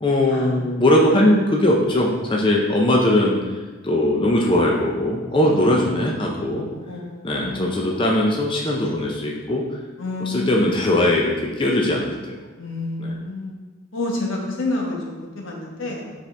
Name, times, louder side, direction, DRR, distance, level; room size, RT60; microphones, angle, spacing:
voice 1, 0.0-3.4 3.8-6.6 7.2-9.6 10.2-12.1 13.0-13.1, left 1 dB, 25° left, -1 dB, 0.5 m, -20 dB
voice 2, 6.3-8.0 8.8-9.1 10.0-10.6 12.6-13.5 13.9-16.1, left 2 dB, 80° left, -1 dB, 1.3 m, -30 dB
7.1 x 4.3 x 3.4 m, 1.3 s
head